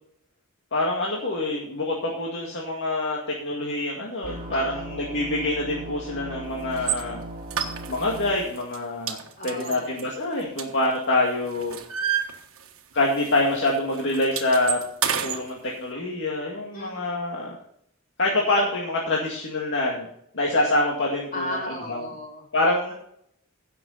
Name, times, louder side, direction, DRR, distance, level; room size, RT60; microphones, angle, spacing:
voice 1, 0.7-7.2 7.9-9.2 9.4-11.8 12.9-14.8 15.2-17.5 18.2-20.1 20.3-22.0 22.5-22.9, left 2 dB, 55° left, -2 dB, 2.1 m, -25 dB
sound 1, 4.2-8.3, right 1 dB, 40° right, 2.3 m, -38 dB
voice 2, 4.5-4.9 9.4-10.0 16.7-17.3 21.3-22.4, left 1 dB, 40° left, -1 dB, 3.6 m, -36 dB
sound 2, 6.8-7.0 7.5-8.2 8.6-8.8 9.1-11.1 11.4-12.9 13.2-13.4 13.7-15.4, right 9 dB, 65° right, 1.5 m, -29 dB
16.5 x 6.8 x 4.1 m, 0.69 s
head